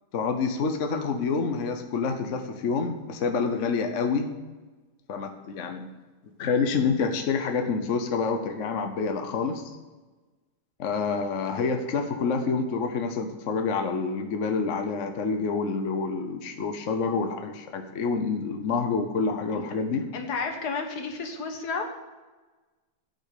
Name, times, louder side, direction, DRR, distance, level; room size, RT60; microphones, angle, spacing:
voice 1, 0.1-4.3 5.1-5.9 6.4-9.7 10.8-20.0, left 4 dB, 55° left, 5 dB, 1.1 m, -27 dB
voice 2, 20.1-21.9, left 4 dB, 70° left, 4 dB, 1.8 m, -32 dB
8.7 x 6.4 x 8.2 m, 1.3 s
omnidirectional pair, 1.8 m